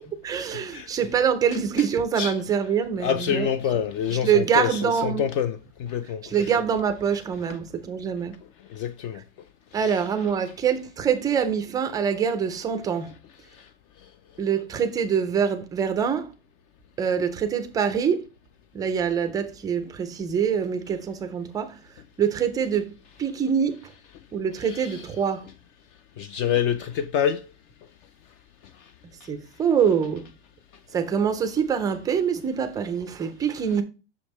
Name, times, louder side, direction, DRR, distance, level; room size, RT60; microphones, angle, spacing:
voice 1, 0.2-3.5 4.1-5.3 6.2-8.3 9.7-13.1 14.4-16.3 17.0-18.3 18.7-21.7 22.2-22.9 23.2-23.9 24.3-25.4 29.3-30.3 30.9-33.8, right 7 dB, 10° right, 0.3 m, -25 dB
voice 2, 3.0-6.2 8.8-9.2 24.6-25.0 26.2-27.4, left 8 dB, 50° left, 0.5 m, -26 dB
6.3 x 5.2 x 3.0 m
supercardioid pair, 150°, 35 cm